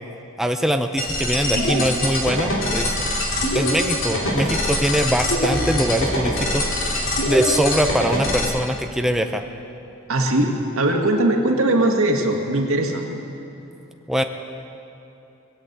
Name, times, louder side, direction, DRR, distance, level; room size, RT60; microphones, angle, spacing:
voice 1, 0.4-3.0 3.5-6.7 7.3-9.4 14.1-14.2, equal, ahead, 5 dB, 0.5 m, -22 dB
sound 1, 1.0-8.5, left 1 dB, 65° left, 2.7 m, -23 dB
voice 2, 10.1-13.1, right 1 dB, 90° right, 2 dB, 1.8 m, -20 dB
21.0 x 8.3 x 8.0 m, 2.8 s
head